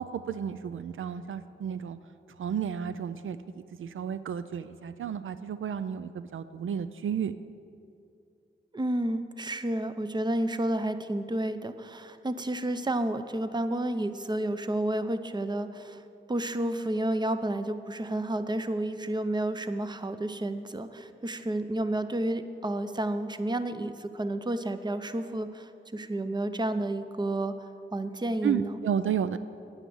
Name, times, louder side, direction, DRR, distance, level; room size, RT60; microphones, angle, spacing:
voice 1, 0.0-2.0 2.4-7.3 28.4-29.4, right 8 dB, 75° right, 13 dB, 0.4 m, -32 dB
voice 2, 8.7-16.0 16.3-27.5 27.9-28.8, right 1 dB, 20° right, 10 dB, 0.6 m, -31 dB
9.5 x 9.0 x 7.1 m, 2.6 s
wide cardioid pair, 75°, 21 cm